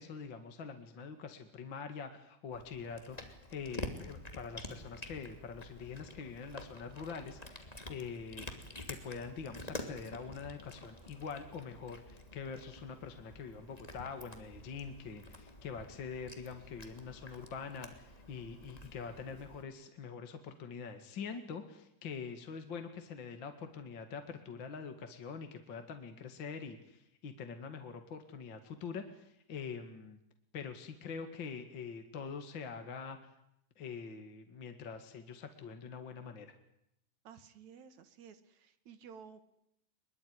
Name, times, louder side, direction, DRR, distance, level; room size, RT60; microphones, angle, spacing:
voice 1, 0.0-8.5 8.9-30.2 30.5-33.2 33.8-36.5, left 5 dB, 40° left, 7 dB, 2.3 m, -44 dB
Cat, 2.5-19.6, left 1 dB, 10° left, 2.4 m, -49 dB
voice 2, 37.2-39.5, right 7 dB, 60° right, 12 dB, 2.8 m, -54 dB
23.5 x 23.0 x 9.7 m, 0.78 s
omnidirectional pair, 4.1 m